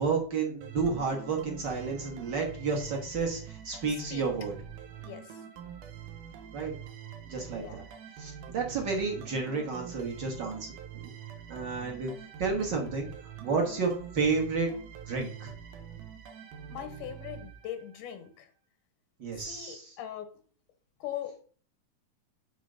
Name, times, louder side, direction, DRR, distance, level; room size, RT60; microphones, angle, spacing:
voice 1, 0.0-4.5 6.5-6.7 7.3-7.8 8.2-10.7 10.9-11.1 11.5-12.1 12.4-13.1 13.4-14.7 15.1-15.5 19.2-19.9, right 4 dB, 50° right, 1 dB, 1.4 m, -31 dB
sound 1, 0.6-18.1, right 9 dB, 80° right, 2.5 m, -45 dB
voice 2, 5.0-5.4 7.5-7.8 16.7-18.5 19.3-20.4 21.0-21.4, left 11 dB, 85° left, 8 dB, 2.6 m, -41 dB
6.3 x 4.0 x 6.3 m, 0.42 s
omnidirectional pair, 3.6 m